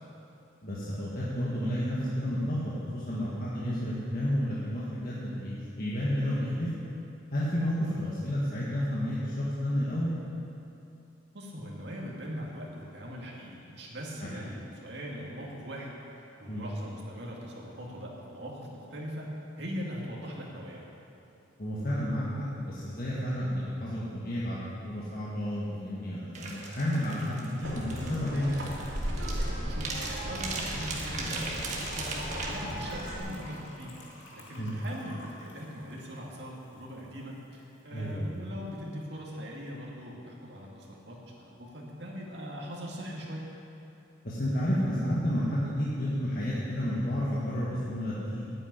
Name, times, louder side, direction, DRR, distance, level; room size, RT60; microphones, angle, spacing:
voice 1, 0.6-6.7 7.3-10.1 14.2-14.4 16.5-16.7 21.6-28.5 34.6-34.7 37.9-38.3 44.2-48.4, equal, 45° left, -8 dB, 1.8 m, -31 dB
voice 2, 11.3-15.9 16.4-19.3 19.6-20.8 29.7-32.1 32.5-34.0 34.3-43.5, equal, 60° right, -3 dB, 2.4 m, -41 dB
sound 1, 26.3-32.5, right 3 dB, 35° right, 1.6 m, -38 dB
sound 2, 27.6-33.2, equal, 85° right, 3.1 m, -36 dB
Gurgling / Trickle dribble / Fill (with liquid), 30.8-37.1 37.3-37.4 37.6-37.8 38.1-38.2, left 2 dB, 75° left, 2.4 m, -48 dB
8.9 x 8.7 x 9.7 m, 2.8 s
head